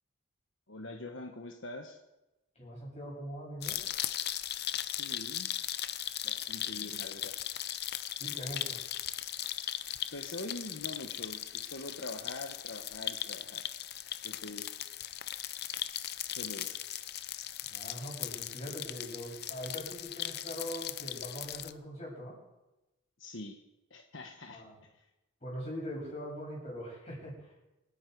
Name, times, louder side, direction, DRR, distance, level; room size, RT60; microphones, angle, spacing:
voice 1, 0.7-2.0 4.8-5.5 6.2-7.4 8.2-8.4 10.1-13.7 14.2-14.8 16.3-16.8 23.2-23.6 23.9-24.6 24.9-25.0, left 2 dB, 70° left, 3 dB, 1.3 m, -44 dB
voice 2, 2.5-3.8 8.2-8.8 17.7-22.4 24.5-24.8 25.4-27.5, equal, 35° left, -3 dB, 7.8 m, -42 dB
sound 1, 3.6-21.7, left 12 dB, 50° left, 0.7 m, -38 dB
27.0 x 10.5 x 4.7 m, 0.98 s
head